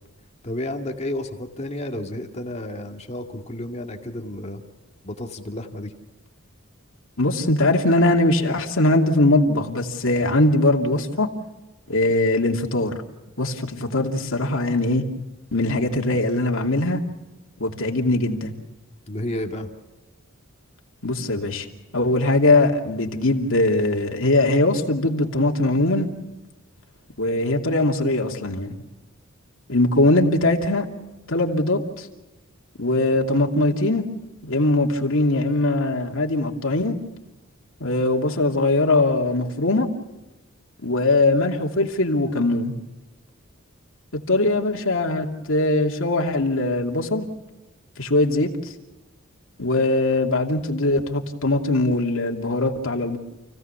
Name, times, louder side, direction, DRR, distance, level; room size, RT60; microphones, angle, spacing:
voice 1, 0.4-4.6 5.0-5.9 19.1-19.7, left 1 dB, 30° left, 3 dB, 2.2 m, -31 dB
voice 2, 7.2-11.3 11.9-13.0 13.4-15.0 15.5-17.0 17.6-18.5 21.0-21.7 21.9-26.1 27.2-28.7 29.7-30.9 31.3-32.1 32.8-34.0 34.4-37.0 37.8-39.9 40.8-42.7 44.3-47.3 48.0-48.5 49.6-53.2, left 2 dB, 70° left, 1 dB, 2.8 m, -21 dB
29.5 x 16.5 x 7.2 m, 1.1 s
head